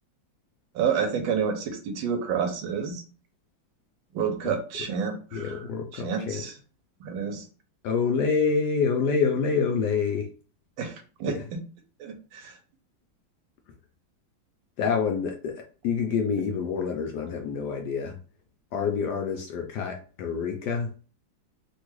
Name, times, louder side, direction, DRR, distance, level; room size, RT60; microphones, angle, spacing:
voice 1, 0.7-3.0 4.1-5.6 5.9-6.5 7.0-7.4 10.8-11.4 12.0-12.5, right 7 dB, 85° right, 6 dB, 1.4 m, -29 dB
voice 2, 4.4-4.9 5.3-6.4 7.8-10.3 11.2-11.4 14.8-18.2 18.7-20.9, left 5 dB, 75° left, 2 dB, 1.0 m, -27 dB
3.5 x 2.2 x 3.0 m, 0.37 s
omnidirectional pair, 2.1 m